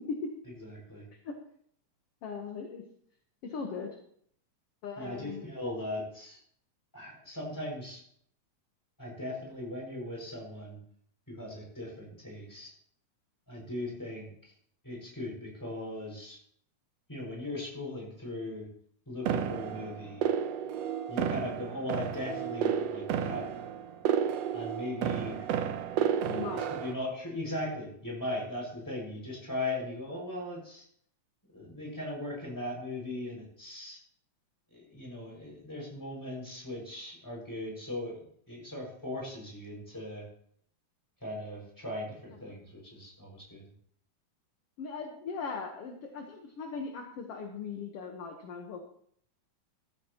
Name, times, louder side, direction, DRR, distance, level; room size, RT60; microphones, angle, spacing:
voice 1, 0.6-1.1 5.0-6.4 6.9-8.0 9.0-10.8 11.3-12.7 13.5-14.3 14.8-16.4 17.1-18.7 19.1-20.3 21.1-23.5 24.5-25.4 26.5-30.8 31.5-34.0 34.7-40.3 41.2-43.6, left 1 dB, 5° left, -3 dB, 5.9 m, -38 dB
voice 2, 2.2-2.8 3.4-3.9 4.8-5.5 25.3-25.5 26.3-26.7 42.4-42.5 44.8-48.8, left 5 dB, 60° left, 3 dB, 2.0 m, -39 dB
sound 1, 19.3-26.9, right 8 dB, 70° right, 1.8 m, -32 dB
15.0 x 13.5 x 3.0 m, 0.63 s
omnidirectional pair, 3.5 m